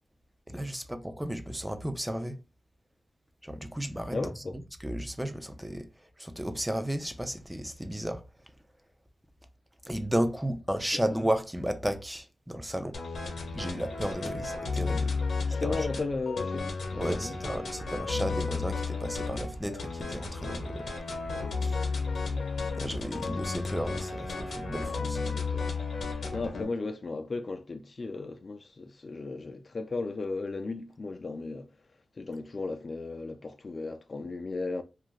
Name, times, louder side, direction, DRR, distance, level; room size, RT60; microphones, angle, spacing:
voice 1, 0.5-2.4 3.4-5.9 6.2-8.2 9.8-13.0 13.5-15.1 15.6-15.9 17.0-20.9 21.6-21.8 22.8-25.2, equal, 5° right, 0.5 m, -33 dB
voice 2, 4.1-4.6 10.9-11.0 15.5-17.4 24.9-25.7 26.3-31.7 32.2-34.8, left 3 dB, 50° left, 0.4 m, -35 dB
sound 1, 12.9-26.6, left 4 dB, 75° left, 0.8 m, -33 dB
2.6 x 2.4 x 3.1 m
cardioid pair, 65°, 0 cm